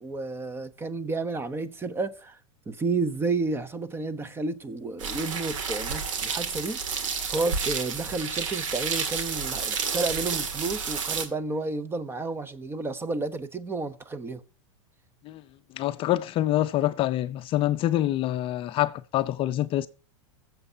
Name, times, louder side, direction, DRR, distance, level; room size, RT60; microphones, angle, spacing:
voice 1, 0.0-2.4 2.7-7.0 7.3-14.4, right 3 dB, 15° right, 0.8 m, -31 dB
sound 1, 5.0-11.3, right 6 dB, 85° right, 2.1 m, -30 dB
voice 2, 15.8-19.9, left 13 dB, 35° left, 0.5 m, -26 dB
21.0 x 7.4 x 2.8 m
supercardioid pair, 130°, 16 cm